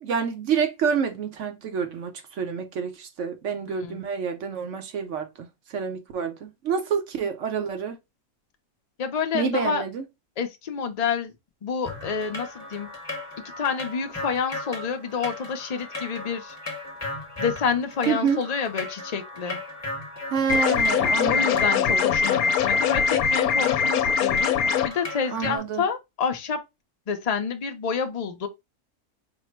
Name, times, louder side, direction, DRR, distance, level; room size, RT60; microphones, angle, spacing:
voice 1, 0.0-8.0 9.3-10.0 18.1-18.4 20.3-22.0 25.3-25.9, right 6 dB, 60° right, 1.0 m, -28 dB
voice 2, 9.0-9.8 10.4-11.3 11.6-12.9 13.6-16.6 17.4-19.6 21.3-24.5 24.8-26.6 27.1-28.5, left 6 dB, 45° left, 0.5 m, -28 dB
sound 1, 11.8-25.6, left 2 dB, 15° left, 1.0 m, -37 dB
sound 2, 20.5-24.9, left 6 dB, 80° left, 1.1 m, -22 dB
4.4 x 2.1 x 4.4 m
omnidirectional pair, 1.5 m